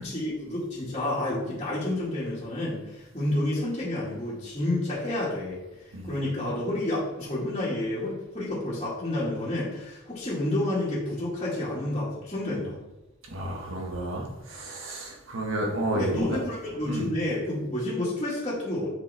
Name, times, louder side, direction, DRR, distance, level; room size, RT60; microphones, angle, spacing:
voice 1, 0.0-5.6 6.1-12.8 15.9-19.0, left 1 dB, 30° left, -10 dB, 2.1 m, -30 dB
voice 2, 13.3-16.4 16.8-17.1, right 1 dB, 75° right, 0 dB, 1.7 m, -31 dB
6.8 x 5.4 x 3.5 m, 1.0 s
head